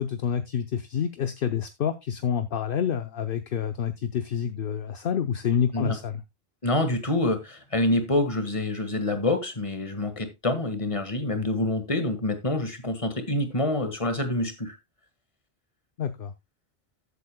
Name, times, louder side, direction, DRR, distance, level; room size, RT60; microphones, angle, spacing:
voice 1, 0.0-6.2 16.0-16.3, left 8 dB, 60° left, 0.8 m, -28 dB
voice 2, 6.6-14.8, left 2 dB, 30° left, 1.8 m, -26 dB
14.0 x 8.2 x 2.2 m
omnidirectional pair, 1.1 m